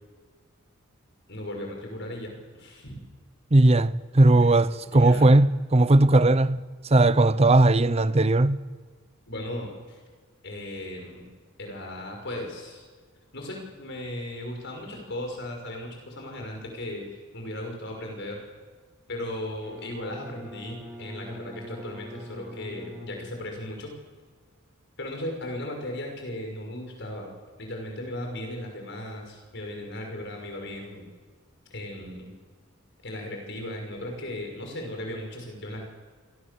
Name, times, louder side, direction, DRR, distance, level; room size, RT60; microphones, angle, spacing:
voice 1, 1.3-3.0 4.8-5.3 9.3-10.0 10.4-11.3 11.6-12.9 13.3-18.4 19.1-23.9 25.0-27.3 27.6-31.0 31.7-32.3 33.0-35.8, left 1 dB, 55° left, 6.1 m, -36 dB
voice 2, 3.5-6.6 6.9-8.6, right 2 dB, 30° right, 0.7 m, -18 dB
Bowed string instrument, 19.6-23.8, equal, 5° right, 6.6 m, -43 dB
28.0 x 23.0 x 7.1 m
head